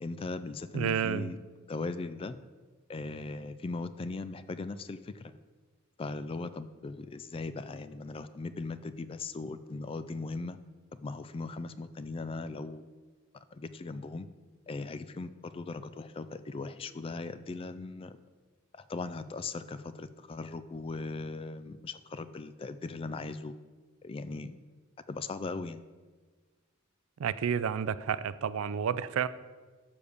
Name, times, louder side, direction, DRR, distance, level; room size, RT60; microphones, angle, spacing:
voice 1, 0.0-1.4 1.7-2.4 2.9-5.3 6.0-10.6 11.0-12.9 13.3-14.3 14.7-18.2 18.8-23.5 24.0-24.6 25.1-25.8, left 3 dB, 25° left, 13 dB, 0.3 m, -39 dB
voice 2, 0.7-1.3 27.2-29.3, right 7 dB, 75° right, 15 dB, 0.4 m, -30 dB
7.1 x 5.0 x 6.7 m, 1.4 s
head